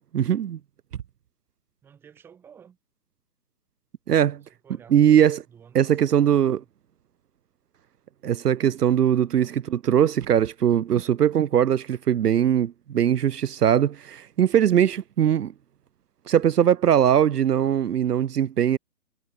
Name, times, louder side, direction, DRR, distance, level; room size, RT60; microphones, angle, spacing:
voice 1, 0.1-0.6 4.1-4.4 4.9-5.4 5.7-6.6 8.2-15.5 16.3-18.8, right 9 dB, 75° right, 0.7 m, -21 dB
voice 2, 1.8-2.8 4.5-5.0 5.5-6.7, right 7 dB, 5° right, 1.2 m, -52 dB
figure-of-eight pair, 150°, 48 cm